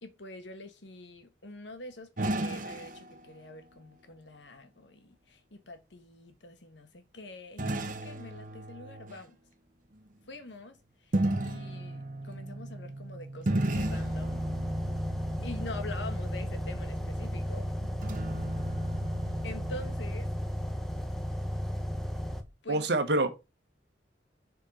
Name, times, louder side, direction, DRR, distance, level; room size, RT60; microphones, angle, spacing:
voice 1, 0.0-9.4 10.3-10.8 11.0-14.4 15.4-17.7 19.4-20.3 22.6-22.9, left 2 dB, 85° left, 1.6 m, -45 dB
sound 1, 2.2-3.8 7.6-9.2 11.1-20.0, right 1 dB, 50° right, 1.1 m, -35 dB
sound 2, 13.7-22.4, equal, ahead, 1.0 m, -34 dB
voice 2, 22.7-23.3, right 2 dB, 65° right, 1.4 m, -26 dB
7.3 x 4.4 x 5.1 m
head